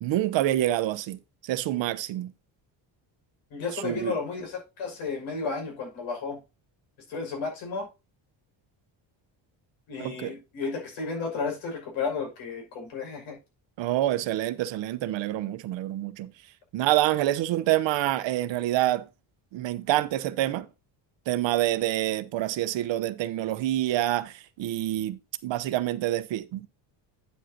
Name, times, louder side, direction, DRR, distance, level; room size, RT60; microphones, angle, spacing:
voice 1, 0.0-2.3 3.7-4.2 10.0-10.4 13.8-16.3 16.7-19.0 19.5-20.7 21.3-26.7, right 14 dB, 70° right, 0.9 m, -27 dB
voice 2, 3.5-6.4 7.1-7.9 9.9-13.4, left 4 dB, 90° left, 5.8 m, -33 dB
9.3 x 7.8 x 2.8 m
cardioid pair, 165°, 46 cm